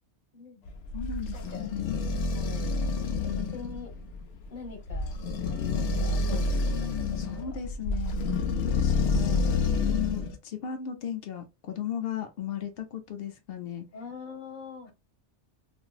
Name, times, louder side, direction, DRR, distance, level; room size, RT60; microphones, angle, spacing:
voice 1, 0.3-0.8 1.3-1.7 2.3-2.8 3.2-3.9 4.5-5.1 5.5-6.9 7.4-7.5 13.9-14.9, left 4 dB, 45° left, 1.2 m, -43 dB
sound 1, 0.7-10.4, left 3 dB, 90° left, 1.0 m, -28 dB
voice 2, 0.9-2.0 6.3-6.4 7.2-8.2 8.7-13.8, left 9 dB, 65° left, 0.8 m, -36 dB
3.0 x 2.5 x 2.3 m
omnidirectional pair, 1.2 m